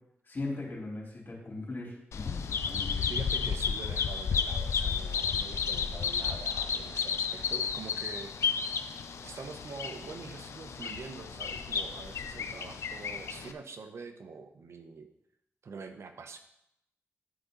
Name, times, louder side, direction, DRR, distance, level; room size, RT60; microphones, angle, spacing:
voice 1, 0.3-3.0, left 2 dB, 45° left, -3 dB, 3.6 m, -39 dB
Bird vocalization bird call bird song, 2.1-13.5, left 6 dB, 80° left, 0.6 m, -32 dB
voice 2, 3.1-8.6 9.2-15.1 15.6-16.4, right 4 dB, 70° right, 7 dB, 0.8 m, -45 dB
11.0 x 5.0 x 4.0 m, 0.79 s
cardioid pair, 60°, 5 cm